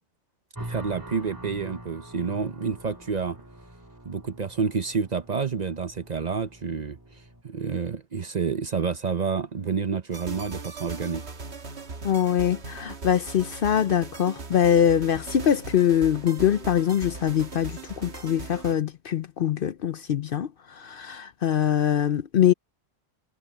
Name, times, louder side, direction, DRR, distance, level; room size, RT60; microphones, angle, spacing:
sound 1, 0.5-7.4, right 1 dB, 15° right, 2.5 m, -44 dB
voice 1, 0.7-3.4 4.0-7.0 7.4-11.3, right 5 dB, 40° right, 0.8 m, -29 dB
sound 2, 10.1-18.8, right 4 dB, 65° right, 1.8 m, -39 dB
voice 2, 12.0-22.5, left 9 dB, 55° left, 0.7 m, -23 dB
omnidirectional pair, 1.2 m